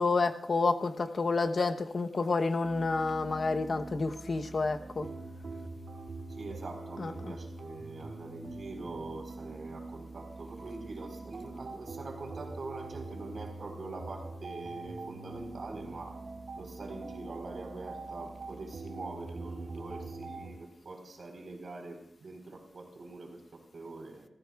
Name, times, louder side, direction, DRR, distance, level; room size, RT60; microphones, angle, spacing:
voice 1, 0.0-5.1 7.0-7.4, left 3 dB, 55° left, 7 dB, 0.9 m, -29 dB
sound 1, 2.6-20.5, right 3 dB, 90° right, 2.3 m, -44 dB
voice 2, 6.3-16.2 16.6-24.3, right 2 dB, 65° right, 1 dB, 4.0 m, -44 dB
29.0 x 14.5 x 2.4 m, 0.72 s
wide cardioid pair, 105°, 0 cm